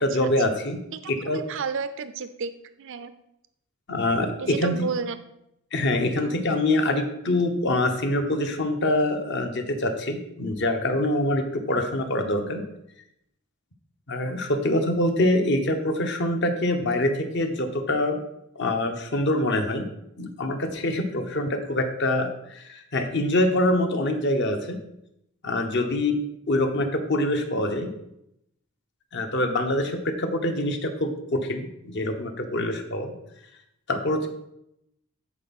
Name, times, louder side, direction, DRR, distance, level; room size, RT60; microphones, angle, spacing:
voice 1, 0.0-0.8 1.1-1.4 3.9-4.9 5.7-12.6 14.1-18.2 18.5-19.9 20.2-24.8 25.4-26.2 26.5-27.9 29.1-33.1 33.9-34.3, left 1 dB, 55° left, 6 dB, 1.0 m, -25 dB
voice 2, 0.9-2.5 2.8-3.1 4.4-5.2 6.1-6.4, right 5 dB, 60° right, 11 dB, 0.4 m, -32 dB
10.5 x 4.7 x 4.2 m, 0.81 s
head